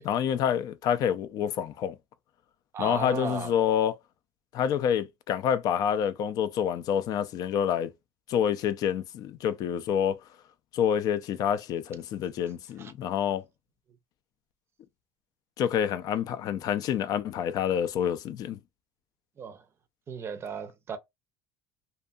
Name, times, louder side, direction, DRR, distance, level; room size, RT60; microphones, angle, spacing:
voice 1, 0.0-2.0 2.8-3.9 4.5-7.9 8.3-10.2 10.7-13.4 15.6-18.6, left 9 dB, 50° left, 0.4 m, -27 dB
voice 2, 2.7-3.5 12.8-12.9 19.4-19.6 20.1-21.0, right 6 dB, 30° right, 0.5 m, -35 dB
2.6 x 2.6 x 2.3 m
supercardioid pair, 125°, 9 cm